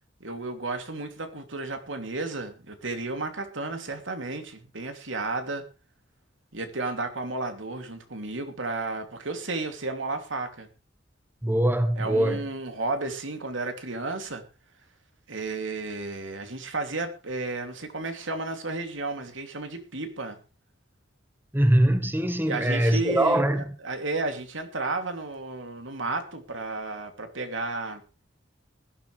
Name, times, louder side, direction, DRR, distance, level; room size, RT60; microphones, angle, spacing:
voice 1, 0.2-5.6 6.5-10.7 12.0-14.4 15.3-20.4 22.4-28.0, right 3 dB, 90° right, 2.8 m, -33 dB
voice 2, 11.4-12.4 21.5-23.6, right 1 dB, 10° right, 1.3 m, -22 dB
19.5 x 12.0 x 3.3 m
head